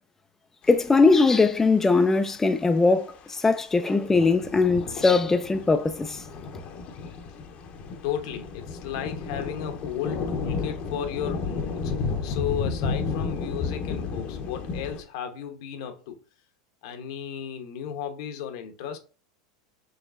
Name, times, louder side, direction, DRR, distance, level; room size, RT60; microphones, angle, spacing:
sound 1, 0.7-1.4 3.1-3.4 4.1-15.0, left 4 dB, 45° left, 0.8 m, -32 dB
voice 1, 0.7-6.2, left 3 dB, 10° left, 0.4 m, -21 dB
voice 2, 8.0-16.2 16.8-19.0, left 9 dB, 70° left, 0.9 m, -34 dB
5.0 x 3.0 x 2.5 m
hypercardioid pair, 100°, 3 cm